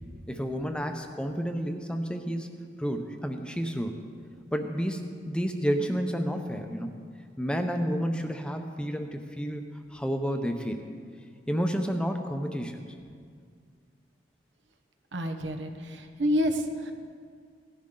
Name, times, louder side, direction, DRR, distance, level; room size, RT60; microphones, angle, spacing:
voice 1, 0.3-3.9 4.5-6.9 7.4-9.6 9.9-10.9 11.5-12.9, equal, 5° left, 5 dB, 0.6 m, -30 dB
voice 2, 15.1-16.9, equal, 80° right, 5 dB, 1.1 m, -28 dB
17.5 x 11.5 x 3.8 m, 2.1 s
head